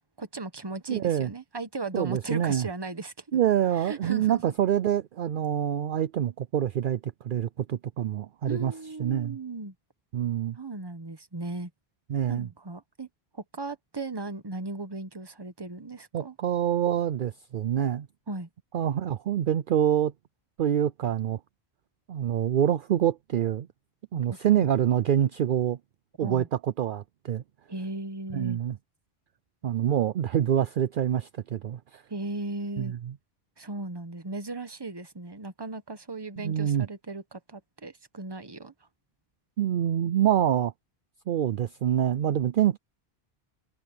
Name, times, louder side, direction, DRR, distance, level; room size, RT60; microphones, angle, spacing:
voice 1, 0.2-3.4 3.8-4.5 8.5-9.7 10.6-11.7 12.3-13.1 13.3-16.3 18.3-18.5 24.1-24.6 26.2-26.5 27.7-28.6 32.1-32.9 33.6-38.7, right 2 dB, 25° right, 1.1 m, -37 dB
voice 2, 0.9-1.3 1.9-2.7 3.3-8.7 9.0-9.4 10.1-10.6 12.1-12.5 16.1-18.1 18.7-20.1 20.6-21.4 22.1-23.7 24.1-25.8 26.2-27.4 28.3-28.8 29.6-32.0 32.8-33.0 36.4-36.9 39.6-40.7 41.3-42.8, right 10 dB, 60° right, 0.7 m, -26 dB
omnidirectional pair, 1.0 m